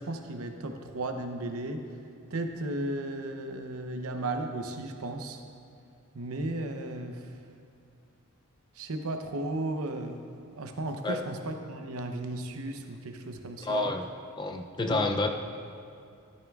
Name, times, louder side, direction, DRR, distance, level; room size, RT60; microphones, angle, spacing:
voice 1, 0.0-1.8 2.3-5.4 6.1-7.3 8.7-10.1 10.6-13.9 14.9-15.2, right 2 dB, 80° right, 5 dB, 0.7 m, -35 dB
voice 2, 13.6-14.1 14.4-15.3, left 2 dB, 20° left, 4 dB, 0.4 m, -29 dB
12.0 x 10.5 x 2.4 m, 2.5 s
head